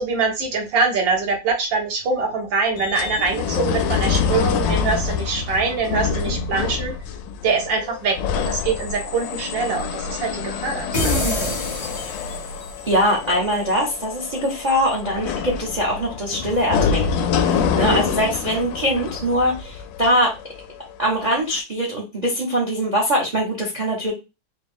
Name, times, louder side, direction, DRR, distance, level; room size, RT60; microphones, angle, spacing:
voice 1, 0.0-6.9 7.4-11.2 17.8-18.0, right 4 dB, 65° right, 2 dB, 1.7 m, -24 dB
sound 1, 2.8-20.9 21.5-21.6, left 6 dB, 75° left, 1.1 m, -26 dB
sound 2, 10.9-12.8, left 1 dB, 35° left, 0.9 m, -25 dB
voice 2, 12.9-20.3 21.0-24.1, equal, 40° right, -1 dB, 0.6 m, -22 dB
4.3 x 2.4 x 3.4 m, 0.26 s
omnidirectional pair, 2.3 m